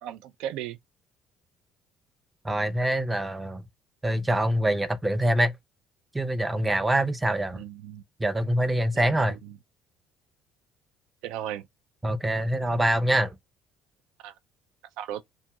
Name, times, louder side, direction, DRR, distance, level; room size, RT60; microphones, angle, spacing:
voice 1, 0.0-0.8 7.5-8.0 8.9-9.6 11.2-11.7 14.2-14.3 15.0-15.2, right 11 dB, 85° right, 0.3 m, -36 dB
voice 2, 2.4-3.6 4.0-5.5 6.1-7.6 8.2-9.4 12.0-13.3, right 1 dB, 10° right, 0.4 m, -25 dB
2.6 x 2.3 x 2.9 m
cardioid pair, 115°, 0 cm